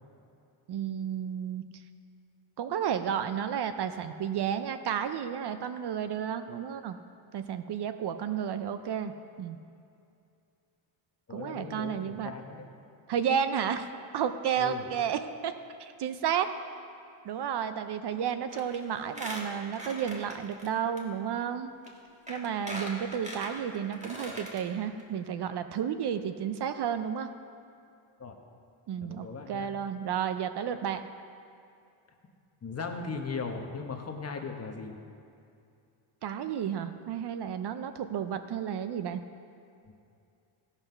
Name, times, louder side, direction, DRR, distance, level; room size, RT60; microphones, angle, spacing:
voice 1, 0.7-1.7 2.6-7.0 7.3-9.6 11.3-12.3 13.1-15.5 15.8-16.5 17.2-21.7 22.3-27.3 28.9-31.0 36.2-39.2, right 8 dB, 55° right, 10 dB, 0.5 m, -32 dB
voice 2, 11.3-12.7 14.6-14.9 28.2-28.4 29.0-29.7 32.6-35.0 39.8-39.9, left 4 dB, 30° left, 3 dB, 1.0 m, -38 dB
Squeak, 18.5-18.8 19.1-20.7 21.0-21.1 21.8-21.9 22.3-24.6 25.0-25.1 25.3-25.4, equal, 15° right, 1.5 m, -40 dB
16.5 x 5.7 x 5.6 m, 2.5 s
cardioid pair, 130°, 49 cm